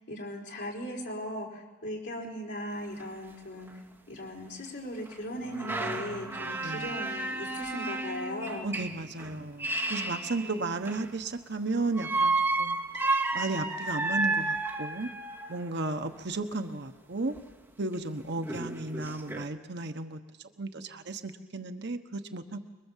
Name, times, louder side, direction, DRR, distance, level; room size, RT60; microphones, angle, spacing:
voice 1, 0.1-3.7 4.1-8.7 10.4-10.6, equal, 60° left, -2 dB, 4.8 m, -38 dB
sound 1, 2.7-2.8 3.0-3.1 3.7-3.8 5.1-11.2 11.9-15.6 17.4-17.5 17.9-18.0 18.4-19.5, right 3 dB, 15° right, 2.0 m, -32 dB
voice 2, 6.4-7.0 8.6-12.8 13.3-15.1 15.5-17.4 17.8-20.2 20.6-22.6, right 3 dB, 60° right, 7 dB, 1.1 m, -34 dB
24.0 x 22.5 x 7.4 m, 1.2 s
head